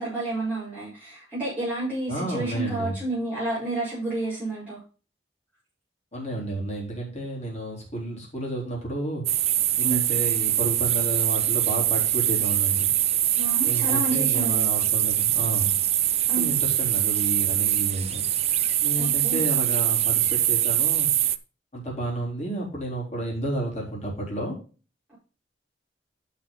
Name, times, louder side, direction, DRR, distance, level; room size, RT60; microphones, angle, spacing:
voice 1, 0.0-4.8 9.8-10.0 13.3-14.7 16.3-16.5 19.0-19.4, right 2 dB, 10° right, -12 dB, 4.8 m, -30 dB
voice 2, 2.1-3.0 6.1-9.2 9.8-12.9 13.6-15.7 16.4-18.3 18.8-21.1 21.7-24.6, right 1 dB, 40° left, -3 dB, 4.0 m, -31 dB
sound 1, 9.3-21.4, right 12 dB, 35° right, 0.4 m, -23 dB
9.9 x 5.7 x 3.9 m, 0.36 s
head